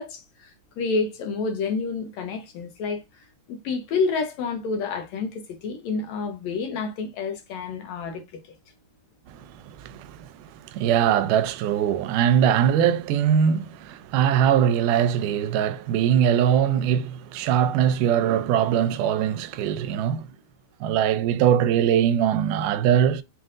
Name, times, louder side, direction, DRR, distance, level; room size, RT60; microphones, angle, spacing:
voice 1, 0.0-8.4, left 4 dB, 75° left, 1.8 m, -29 dB
voice 2, 9.3-10.3 10.6-20.3 20.8-23.2, right 9 dB, 85° right, 2.1 m, -22 dB
5.8 x 2.6 x 2.4 m
omnidirectional pair, 3.6 m